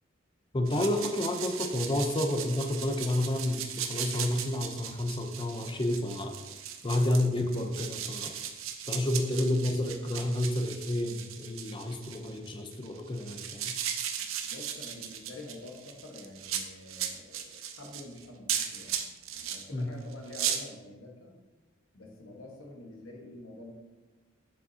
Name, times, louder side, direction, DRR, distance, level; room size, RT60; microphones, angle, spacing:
voice 1, 0.5-6.4 6.8-8.4 8.9-13.8 19.7-19.9, left 1 dB, 25° left, 5 dB, 0.6 m, -30 dB
sound 1, 0.7-19.6 20.1-20.6, right 9 dB, 80° right, 0.6 m, -37 dB
voice 2, 14.2-18.9 19.3-21.4 21.9-23.7, left 2 dB, 80° left, 0 dB, 1.3 m, -47 dB
6.7 x 6.4 x 2.7 m, 1.2 s
head